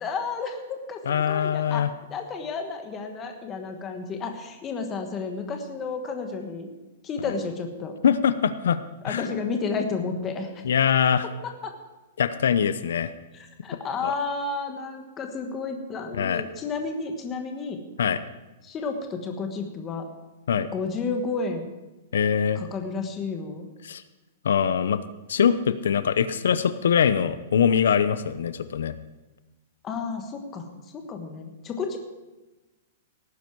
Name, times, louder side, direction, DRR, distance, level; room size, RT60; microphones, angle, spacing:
voice 1, 0.0-6.7 7.0-7.9 9.0-10.6 11.4-11.7 13.3-17.8 18.6-20.0 20.7-21.7 22.5-23.7 29.8-30.7 30.9-32.0, left 4 dB, 15° left, 5 dB, 1.3 m, -32 dB
voice 2, 1.1-1.9 8.0-8.8 9.1-9.3 10.6-11.3 12.2-13.1 14.0-14.1 16.1-16.4 18.0-18.2 20.5-20.7 22.1-22.6 23.8-24.0 24.4-25.0 25.3-28.9, left 7 dB, 90° left, 13 dB, 0.8 m, -23 dB
17.5 x 9.7 x 4.7 m, 1.1 s
hypercardioid pair, 175°, 0 cm